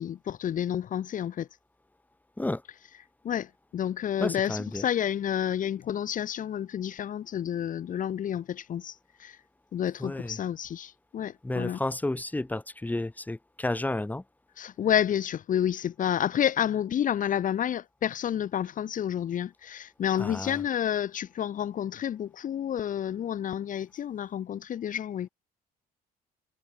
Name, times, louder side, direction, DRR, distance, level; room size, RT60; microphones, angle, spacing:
voice 1, 0.0-1.5 3.2-9.4 9.7-11.8 14.6-25.3, left 9 dB, 50° left, 2.4 m, -30 dB
voice 2, 4.2-4.9 10.0-10.4 11.4-14.2 20.2-20.6, left 2 dB, 10° left, 5.3 m, -31 dB
cardioid pair, 110°, 17 cm